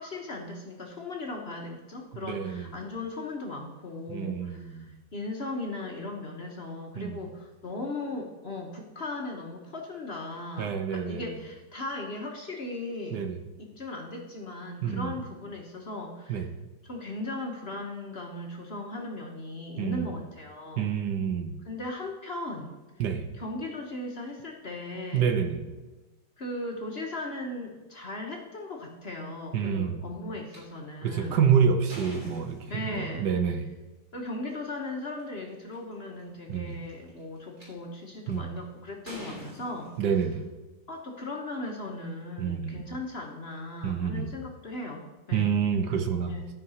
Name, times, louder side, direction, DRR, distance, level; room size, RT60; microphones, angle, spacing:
voice 1, 0.0-13.3 13.6-16.5 16.8-20.9 21.6-22.8 23.4-25.3 26.4-31.4 32.7-33.3 34.1-39.9 40.9-45.5 46.3-46.5, left 2 dB, 40° left, 1 dB, 1.1 m, -37 dB
voice 2, 2.2-2.7 4.1-4.9 7.0-7.2 10.6-11.3 13.1-13.4 14.8-15.2 16.3-16.5 19.8-20.2 20.8-21.6 23.0-23.3 25.1-25.7 29.5-30.0 31.0-33.7 36.5-36.8 38.3-38.5 40.0-40.4 42.4-42.8 43.8-44.3 45.3-46.3, right 7 dB, 70° right, 7 dB, 1.4 m, -28 dB
sound 1, 30.5-30.6 31.2-33.1 34.3-34.5 35.2-35.3 35.5-35.9 36.7-37.6 38.3-38.6 39.1-40.5, left 1 dB, 35° right, 3.7 m, -44 dB
12.5 x 4.8 x 5.5 m, 1.2 s
omnidirectional pair, 1.9 m